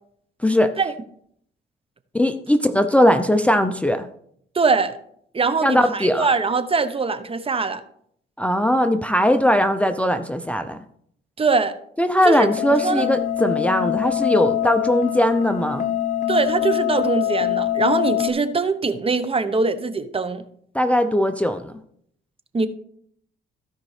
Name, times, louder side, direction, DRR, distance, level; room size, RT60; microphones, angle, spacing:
voice 1, 2.1-4.1 5.6-6.3 8.4-10.8 12.0-15.8 20.7-21.7, equal, 5° left, 0.6 m, -19 dB
voice 2, 4.5-5.0 5.3-7.8 11.4-11.7 12.2-12.5 12.8-13.1 16.3-20.4 22.5-22.7, right 4 dB, 30° right, 0.8 m, -22 dB
sound 1, 12.4-18.3, left 11 dB, 40° left, 1.3 m, -24 dB
15.5 x 5.2 x 3.3 m
cardioid pair, 90°, 20 cm